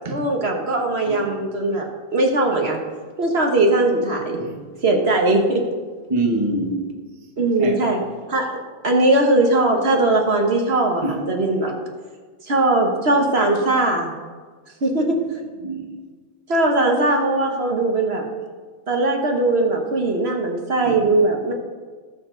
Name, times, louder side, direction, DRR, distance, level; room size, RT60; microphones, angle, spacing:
voice 1, 0.1-2.8 3.2-4.4 4.8-5.6 7.4-8.0 8.3-8.6 8.8-11.7 12.4-14.1 14.8-15.2 16.5-18.2 18.9-21.5, right 2 dB, 55° right, 1.5 m, -20 dB
voice 2, 6.1-7.0 7.6-7.8 11.0-11.3 15.6-16.0 20.8-21.0, right 2 dB, 25° right, 1.2 m, -25 dB
18.0 x 7.0 x 3.9 m
omnidirectional pair, 1.4 m